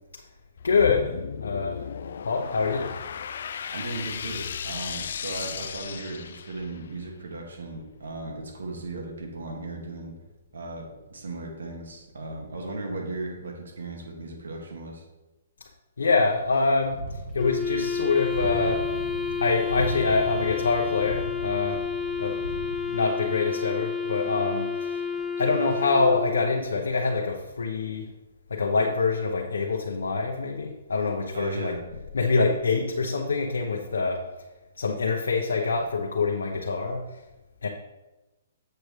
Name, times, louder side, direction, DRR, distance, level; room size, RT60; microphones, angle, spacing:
voice 1, 0.6-1.8 2.2-3.0 16.0-18.9 19.4-21.9 22.2-22.4 22.9-25.0 25.4-28.1 28.5-31.8 32.1-34.3 34.8-37.2 37.6-37.7, left 4 dB, 90° left, 0 dB, 0.9 m, -25 dB
sound 1, 0.6-6.9, left 7 dB, 65° left, 0.4 m, -35 dB
voice 2, 3.7-10.2 10.5-15.0 31.3-31.8, right 2 dB, 85° right, 1 dB, 2.1 m, -36 dB
sound 2, 16.8-22.8, right 1 dB, 65° right, 1.7 m, -37 dB
Wind instrument woodwind instrument, 17.4-26.6, left 6 dB, 5° left, 0.8 m, -30 dB
7.8 x 6.7 x 3.3 m, 1.1 s
hypercardioid pair, 145°, 0 cm